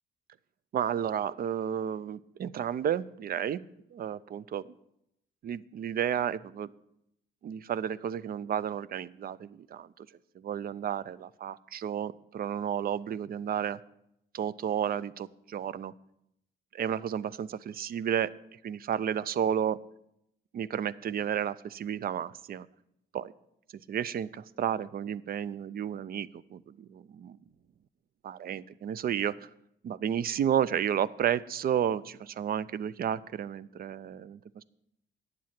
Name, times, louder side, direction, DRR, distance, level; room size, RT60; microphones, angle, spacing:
voice 1, 0.7-3.6 3.9-4.6 5.4-6.7 7.4-9.9 10.4-13.8 14.3-15.9 16.7-18.3 18.6-19.8 20.5-22.7 23.1-23.3 23.9-27.4 28.2-29.3 29.8-34.6, right 9 dB, 50° right, 19 dB, 0.4 m, -32 dB
9.7 x 7.5 x 5.8 m, 0.79 s
cardioid pair, 90°, 20 cm